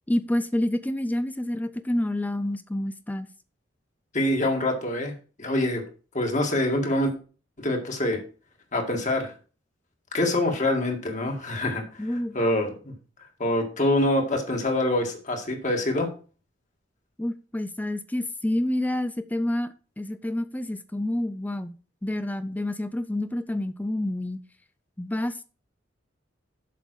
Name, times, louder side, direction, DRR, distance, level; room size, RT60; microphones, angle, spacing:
voice 1, 0.1-3.3 12.0-12.4 17.2-24.4 25.0-25.5, left 1 dB, 10° left, 0.4 m, -28 dB
voice 2, 4.1-5.8 6.1-7.1 7.6-8.2 8.7-9.3 10.1-11.8 12.3-12.7 13.4-16.1, left 1 dB, 40° left, 2.0 m, -25 dB
7.6 x 5.3 x 6.3 m
head